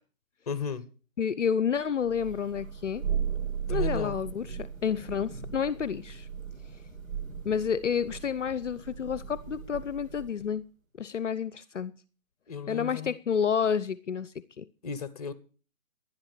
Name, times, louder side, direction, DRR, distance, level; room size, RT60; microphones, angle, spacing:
voice 1, 0.5-0.8 3.7-4.2 12.5-13.2 14.8-15.3, left 6 dB, 30° left, 1.2 m, -35 dB
voice 2, 1.2-3.0 3.7-6.3 7.5-10.6 11.0-11.9 12.7-14.3 14.6-14.7, left 7 dB, 60° left, 0.8 m, -30 dB
Thunder, 2.0-10.5, right 7 dB, 70° right, 4.7 m, -36 dB
11.5 x 11.0 x 6.7 m
hypercardioid pair, 175°, 42 cm